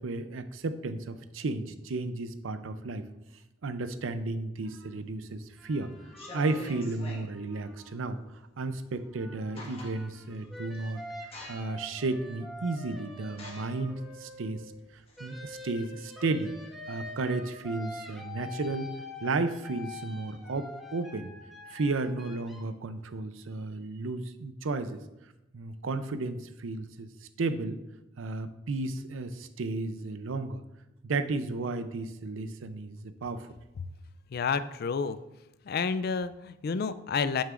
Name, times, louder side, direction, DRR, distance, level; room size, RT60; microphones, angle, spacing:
voice 1, 0.0-3.1 3.6-5.9 6.3-8.2 8.6-11.0 11.5-14.7 15.2-16.5 16.9-18.9 19.2-21.3 21.7-25.0 25.5-27.1 27.4-27.8 28.2-30.6 31.0-33.5, right 3 dB, 85° right, 11 dB, 0.5 m, -33 dB
sound 1, 5.1-5.5 6.0-7.3 8.9-9.0 9.3-10.2 10.7-10.9 11.3-11.9 12.4-12.5 13.3-15.6, left 1 dB, 30° left, 1.3 m, -46 dB
sound 2, 5.6-8.6 8.9-14.7 15.2-22.6, left 2 dB, ahead, 1.0 m, -46 dB
voice 2, 34.3-35.2 35.7-37.4, left 5 dB, 50° left, 13 dB, 0.4 m, -30 dB
8.8 x 7.2 x 2.5 m, 0.96 s
head